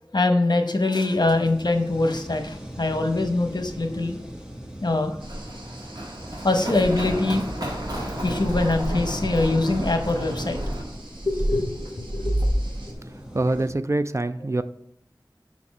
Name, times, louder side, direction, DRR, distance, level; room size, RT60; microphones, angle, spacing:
voice 1, 0.1-4.2 4.8-5.1 6.4-7.5 8.2-10.6 11.3-12.3, left 2 dB, 60° left, 6 dB, 0.9 m, -23 dB
sound 1, 1.1-13.7, equal, 10° right, 1.5 m, -41 dB
Run, 5.2-10.8, right 1 dB, 60° right, 1.7 m, -32 dB
sound 2, 5.2-12.9, right 1 dB, 85° right, 1.2 m, -32 dB
voice 2, 13.3-14.6, right 2 dB, 40° right, 11 dB, 0.3 m, -24 dB
5.8 x 4.2 x 6.0 m, 0.73 s
wide cardioid pair, 45°, 8 cm